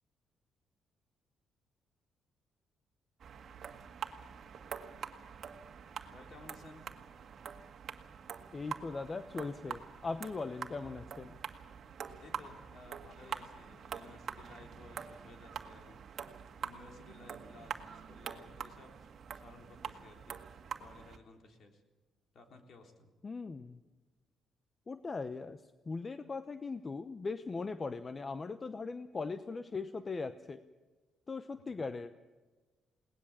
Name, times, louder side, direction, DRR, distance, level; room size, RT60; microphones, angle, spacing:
sound 1, 3.2-21.2, right 7 dB, 55° right, 1.8 m, -45 dB
voice 1, 6.1-6.9 12.2-16.3 16.6-20.4 20.8-21.8 22.3-23.1 31.5-31.8, left 3 dB, 60° left, 4 dB, 3.8 m, -56 dB
voice 2, 8.5-11.3 23.2-23.8 24.9-25.6 25.9-30.6 31.3-32.1, left 4 dB, 30° left, 11 dB, 0.8 m, -39 dB
21.5 x 18.5 x 7.4 m, 1.3 s
cardioid pair, 90°, 0 cm